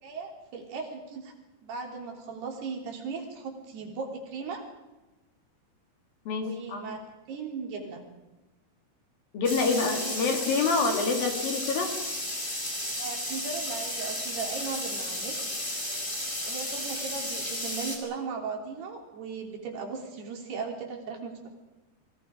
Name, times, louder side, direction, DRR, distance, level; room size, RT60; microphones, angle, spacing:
voice 1, 0.0-1.3 1.6-4.6 6.4-7.0 7.3-8.0 9.7-10.5 13.0-15.3 16.5-21.5, right 5 dB, 65° right, 2 dB, 5.3 m, -37 dB
voice 2, 6.3-6.8 9.3-11.9, left 4 dB, 60° left, 4 dB, 4.1 m, -27 dB
sound 1, 9.4-18.0, left 1 dB, 10° left, 4.3 m, -33 dB
28.5 x 23.5 x 5.2 m, 1.1 s
omnidirectional pair, 5.0 m